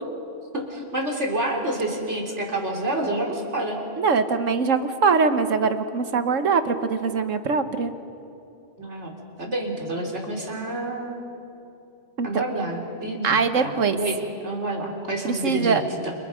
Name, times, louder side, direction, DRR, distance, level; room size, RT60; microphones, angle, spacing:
voice 1, 0.5-3.8 8.8-9.1 9.4-11.3 12.2-16.1, right 1 dB, 65° right, 0 dB, 3.9 m, -28 dB
voice 2, 4.0-7.9 12.2-12.4 13.2-14.0 15.2-15.8, right 5 dB, 85° right, 9 dB, 1.6 m, -22 dB
29.0 x 29.0 x 5.2 m, 2.8 s
omnidirectional pair, 1.3 m